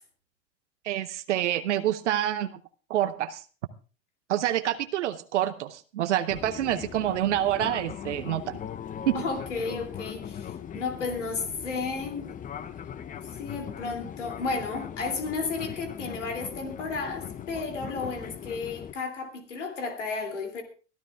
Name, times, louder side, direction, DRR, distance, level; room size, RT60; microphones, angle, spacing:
voice 1, 0.8-2.6 2.9-3.4 4.3-8.6 9.1-9.2, right 12 dB, 75° right, 11 dB, 0.8 m, -27 dB
Fixed-wing aircraft airplane, 6.3-18.9, left 8 dB, 20° left, 0.6 m, -40 dB
voice 2, 9.1-12.3 13.2-20.6, left 4 dB, 80° left, 4 dB, 2.8 m, -33 dB
22.5 x 13.5 x 2.4 m, 0.37 s
hypercardioid pair, 85°, 36 cm